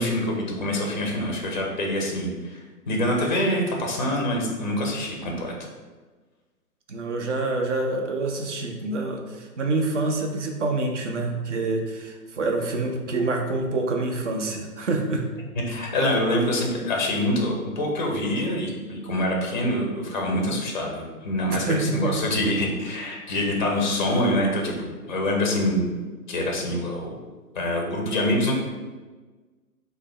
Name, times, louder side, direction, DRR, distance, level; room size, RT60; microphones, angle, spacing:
voice 1, 0.0-2.6 2.9-5.5 15.7-25.9 26.3-27.1 27.6-28.5, left 1 dB, 30° left, 0 dB, 0.4 m, -25 dB
voice 2, 6.9-15.2 21.5-22.2, right 2 dB, 50° right, 3 dB, 0.5 m, -26 dB
3.3 x 2.2 x 3.1 m, 1.3 s
figure-of-eight pair, 125°, 47 cm